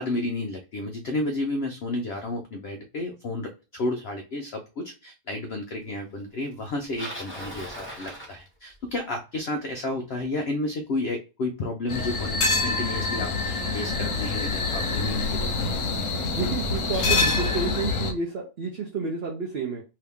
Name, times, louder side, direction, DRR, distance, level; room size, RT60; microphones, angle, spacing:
voice 1, 0.0-15.7, left 2 dB, 80° left, 4 dB, 0.5 m, -31 dB
Bicycle, 6.6-9.0 14.0-14.1 14.9-15.0 16.1-16.2 16.4-17.8, equal, 10° left, 1.0 m, -39 dB
sound 1, 11.9-18.1, left 3 dB, 60° left, 1.0 m, -26 dB
voice 2, 16.4-19.8, right 4 dB, 60° right, 1 dB, 0.6 m, -30 dB
2.8 x 2.7 x 3.4 m, 0.30 s
omnidirectional pair, 1.7 m